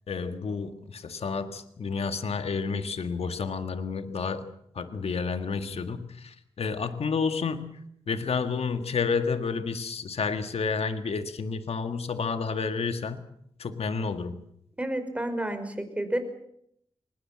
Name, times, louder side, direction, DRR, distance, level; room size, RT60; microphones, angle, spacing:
voice 1, 0.1-4.5 4.7-7.8 8.1-13.2 13.6-14.4, left 5 dB, 70° left, 9 dB, 1.8 m, -30 dB
voice 2, 14.8-16.2, right 1 dB, 10° right, 8 dB, 5.2 m, -30 dB
24.0 x 20.5 x 7.5 m, 0.71 s
cardioid pair, 65°, 11 cm